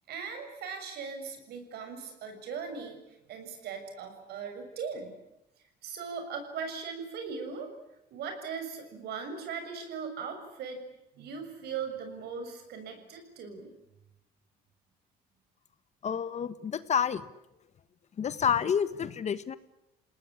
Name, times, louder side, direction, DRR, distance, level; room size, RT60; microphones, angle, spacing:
voice 1, 0.1-3.0 3.3-5.2 5.8-7.7 8.1-10.8 11.2-13.7, right 5 dB, 75° right, 6 dB, 6.9 m, -39 dB
voice 2, 16.0-17.2 18.2-19.6, left 7 dB, 40° left, 14 dB, 1.4 m, -29 dB
29.0 x 19.0 x 10.0 m, 0.87 s
cardioid pair, 110°, 17 cm